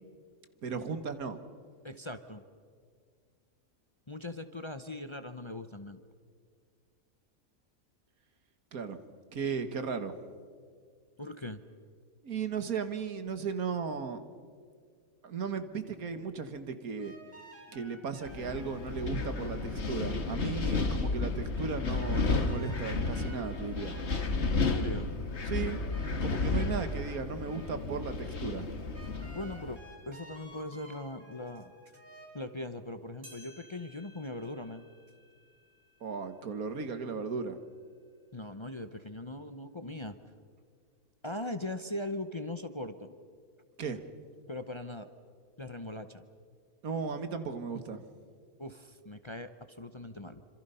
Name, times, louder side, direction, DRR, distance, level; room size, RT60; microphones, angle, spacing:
voice 1, 0.6-1.4 8.7-9.0 9.3-10.1 12.2-14.2 15.2-17.1 17.7-24.0 25.5-25.8 26.1-28.7 36.0-37.6 43.8-44.0 46.8-48.0, right 5 dB, 85° right, 9 dB, 1.9 m, -36 dB
voice 2, 1.8-2.4 4.1-6.0 11.2-11.6 24.6-25.1 29.2-29.8 30.1-31.7 32.3-34.8 38.3-40.2 41.2-43.1 44.5-45.1 45.6-46.2 48.6-50.4, left 2 dB, 25° left, 9 dB, 0.7 m, -40 dB
sound 1, 17.0-20.3 22.0-24.8 25.6-27.8 28.1-28.2 28.9-32.3, right 1 dB, 10° right, 5.8 m, -54 dB
Wind, 18.3-29.8, left 3 dB, 50° left, 1.7 m, -32 dB
sound 2, 33.2-37.9 38.4-38.5 39.3-39.4 40.3-40.4, left 1 dB, 25° right, 4.9 m, -59 dB
27.0 x 26.5 x 5.6 m, 2.1 s
omnidirectional pair, 1.5 m